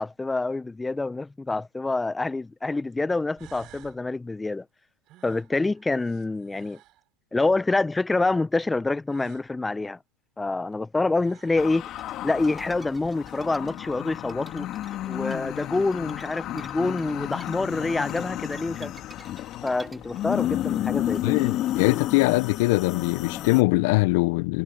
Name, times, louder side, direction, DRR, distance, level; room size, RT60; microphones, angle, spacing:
voice 1, 0.0-4.6 5.2-6.8 7.3-10.0 10.4-11.9 12.2-14.7 15.1-18.9 19.6-21.4, left 3 dB, 10° left, 1.1 m, -27 dB
sound 1, 1.9-2.0 2.9-3.0 3.4-4.0 5.1-7.0 9.1-9.5 10.7-10.8 11.1-11.7, right 17 dB, 45° right, 6.5 m, -53 dB
sound 2, 11.6-23.6, left 13 dB, 45° left, 2.5 m, -32 dB
sound 3, 11.6-22.1, right 3 dB, 10° right, 6.8 m, -52 dB
voice 2, 21.2-24.6, left 24 dB, 60° left, 1.0 m, -22 dB
hypercardioid pair, 95°, 0 cm